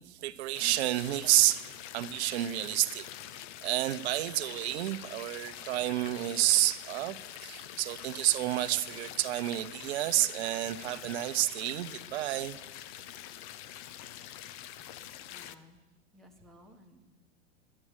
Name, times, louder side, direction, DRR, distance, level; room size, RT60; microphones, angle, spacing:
voice 1, 0.1-3.1 3.6-7.2 7.4-12.6, right 15 dB, 60° right, 0.8 m, -30 dB
sound 1, 0.5-15.5, left 12 dB, 40° left, 0.6 m, -45 dB
voice 2, 15.3-15.8 16.1-17.1, left 1 dB, ahead, 1.3 m, -57 dB
11.5 x 8.7 x 8.1 m
hypercardioid pair, 135°, 37 cm